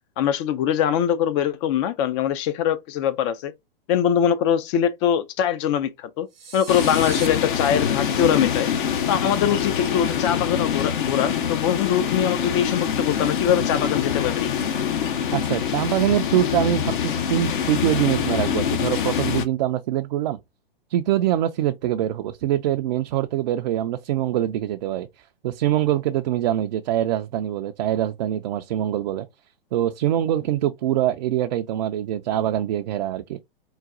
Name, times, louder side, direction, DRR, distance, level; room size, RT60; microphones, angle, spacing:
voice 1, 0.2-3.5 3.9-6.3 6.5-8.7 9.1-14.5, left 9 dB, 30° left, 0.4 m, -22 dB
sound 1, 6.3-7.3, right 6 dB, 85° right, 0.8 m, -37 dB
sound 2, 6.7-19.5, left 8 dB, 60° left, 0.8 m, -25 dB
voice 2, 15.3-20.4 20.9-29.3 29.7-33.4, right 12 dB, 50° right, 0.4 m, -24 dB
3.9 x 2.2 x 3.6 m
hypercardioid pair, 115°, 29 cm